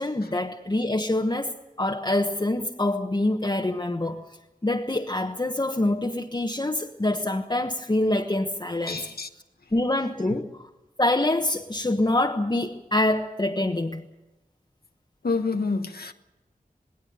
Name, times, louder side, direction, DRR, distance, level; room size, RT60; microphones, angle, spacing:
voice 1, 0.0-4.2 4.6-9.1 9.7-10.7 11.0-14.0, left 1 dB, 30° left, 1.2 m, -25 dB
voice 2, 8.9-9.3 15.2-16.1, left 4 dB, 85° left, 1.2 m, -28 dB
19.0 x 17.5 x 9.5 m
wide cardioid pair, 65°, 15 cm